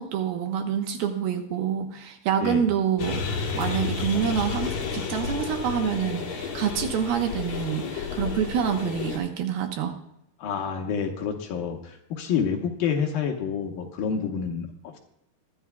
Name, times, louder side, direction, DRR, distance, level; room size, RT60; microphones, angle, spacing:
voice 1, 0.0-3.2 3.5-10.0, right 8 dB, 75° right, 5 dB, 2.8 m, -27 dB
sound 1, 3.0-9.2, left 6 dB, 50° left, 3.3 m, -31 dB
voice 2, 10.4-15.0, left 7 dB, 70° left, 3 dB, 2.7 m, -28 dB
22.5 x 11.0 x 2.3 m, 0.78 s
omnidirectional pair, 4.7 m